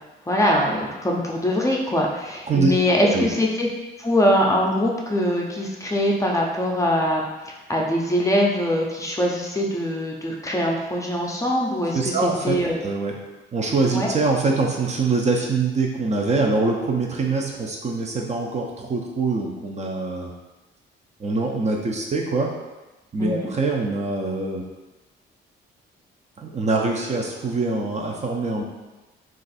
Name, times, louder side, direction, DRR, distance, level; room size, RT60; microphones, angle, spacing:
voice 1, 0.3-3.7 4.0-12.1 12.4-12.8 13.9-14.1 23.2-23.5, equal, 15° left, -2 dB, 0.5 m, -22 dB
voice 2, 11.9-12.6 12.8-13.2 13.5-20.3 21.2-22.5 23.1-24.6 26.4-28.6, right 3 dB, 35° right, 0 dB, 0.5 m, -24 dB
2.5 x 2.4 x 4.0 m, 1.1 s
cardioid pair, 90°, 20 cm